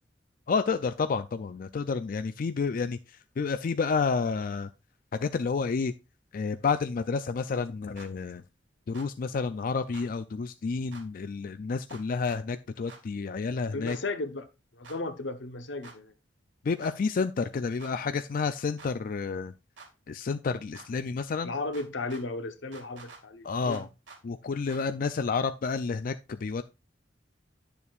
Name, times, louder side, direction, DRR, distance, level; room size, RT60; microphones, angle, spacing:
voice 1, 0.5-4.7 5.1-5.9 6.3-8.4 8.9-14.0 16.6-19.5 20.1-21.5 23.4-23.9 24.2-26.6, left 5 dB, 50° left, 0.4 m, -30 dB
sound 1, 8.0-8.1 8.9-9.1 9.9-10.1 10.9-11.0 11.9-12.4 12.9-13.0 13.9-14.0 14.8-15.0 15.8-16.0 16.8-17.0 17.8-17.9 18.8-18.9 19.8-19.9 20.7-20.9 21.7-22.2 22.7-23.2 23.7-24.2 24.7-24.8, right 4 dB, 80° right, 2.1 m, -48 dB
voice 2, 13.7-14.5 14.7-16.1 21.4-23.8, left 2 dB, 85° left, 1.0 m, -35 dB
10.5 x 6.9 x 2.4 m
head